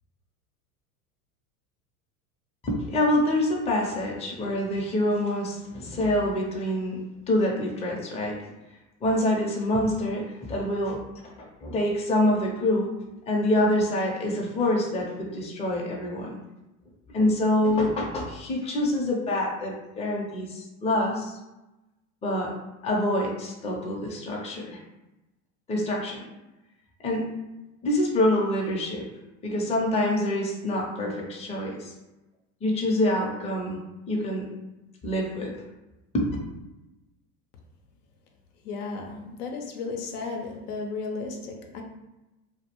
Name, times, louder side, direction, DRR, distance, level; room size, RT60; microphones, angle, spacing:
voice 1, 2.6-7.0 7.3-8.4 9.0-11.0 11.6-12.9 13.3-16.3 17.1-21.4 22.2-22.5 22.8-24.8 25.7-26.2 27.0-27.3 27.8-29.0 29.4-31.9 32.6-33.8 34.1-34.5 35.0-35.5 36.1-36.3, left 1 dB, 15° left, -2 dB, 0.5 m, -26 dB
voice 2, 38.6-41.8, left 4 dB, 80° left, 2 dB, 0.6 m, -34 dB
2.2 x 2.1 x 2.9 m, 1.0 s
hypercardioid pair, 90°, 45 cm